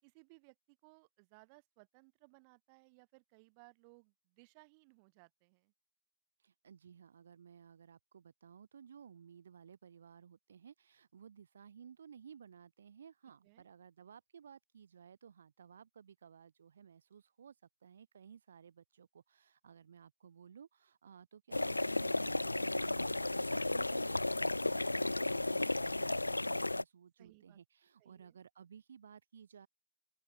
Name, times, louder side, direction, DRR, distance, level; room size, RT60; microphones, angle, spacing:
voice 1, 0.0-5.7 13.4-13.7 27.2-27.6 28.0-28.4, right 32 dB, 45° right, 5.0 m, -63 dB
voice 2, 6.4-17.6 17.8-29.7, right 7 dB, 70° right, 4.4 m, -57 dB
sound 1, 21.5-26.8, left 2 dB, 85° left, 0.4 m, -34 dB
open air
figure-of-eight pair, 90°, 0 cm